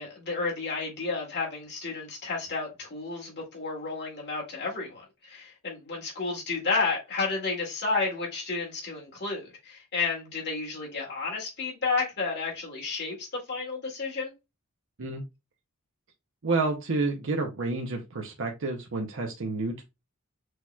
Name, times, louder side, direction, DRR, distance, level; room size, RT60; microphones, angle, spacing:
voice 1, 0.0-14.3, left 4 dB, 50° left, 2.4 m, -31 dB
voice 2, 16.4-19.8, right 3 dB, 60° right, 0.7 m, -29 dB
6.3 x 2.9 x 2.3 m
head